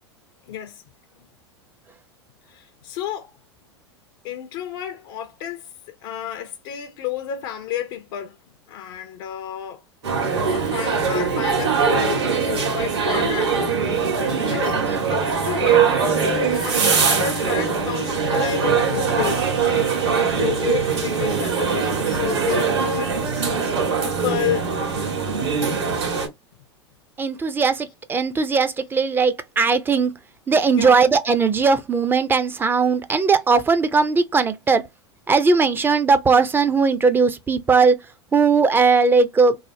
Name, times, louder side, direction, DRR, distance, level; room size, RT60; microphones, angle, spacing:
voice 1, 0.5-0.8 2.5-3.3 4.2-8.4 8.7-9.8 10.5-13.6 14.5-14.8 15.1-15.9 16.2-20.1 20.4-23.5 24.0-24.7 30.8-31.0, left 11 dB, 55° left, 0.5 m, -31 dB
sound 1, 10.0-26.3, right 5 dB, 70° right, 1.5 m, -22 dB
voice 2, 27.2-30.1 30.5-34.8 35.3-38.0 38.3-39.6, right 4 dB, 15° right, 0.5 m, -18 dB
3.2 x 2.0 x 2.7 m
hypercardioid pair, 90°, 14 cm